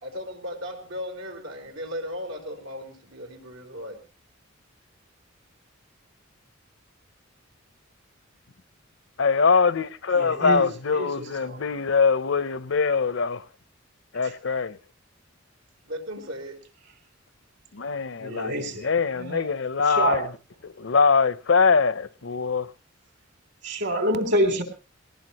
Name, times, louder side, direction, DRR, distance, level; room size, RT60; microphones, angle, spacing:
voice 1, 0.0-4.0 15.8-16.6, equal, 80° right, 4.4 m, -36 dB
voice 2, 9.2-13.4 14.1-14.8 17.7-20.3 20.6-22.7, left 5 dB, 65° left, 0.7 m, -23 dB
voice 3, 10.1-10.7 10.9-11.6 18.2-18.9 19.2-19.5 19.9-20.2 23.6-24.6, right 1 dB, 60° right, 3.5 m, -27 dB
20.0 x 18.5 x 3.0 m
head